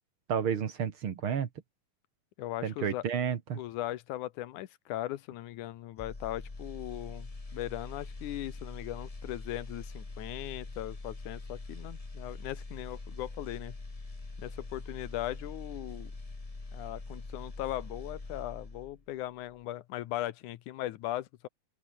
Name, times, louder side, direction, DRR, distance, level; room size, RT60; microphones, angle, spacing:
voice 1, 0.3-1.5 2.6-3.6, right 7 dB, 50° right, 2.1 m, -31 dB
voice 2, 2.4-3.1 3.5-13.8 14.4-16.1 16.7-21.5, left 14 dB, 85° left, 2.5 m, -38 dB
sound 1, 6.0-19.1 19.4-19.6, left 3 dB, 25° left, 0.7 m, -43 dB
open air
omnidirectional pair, 3.4 m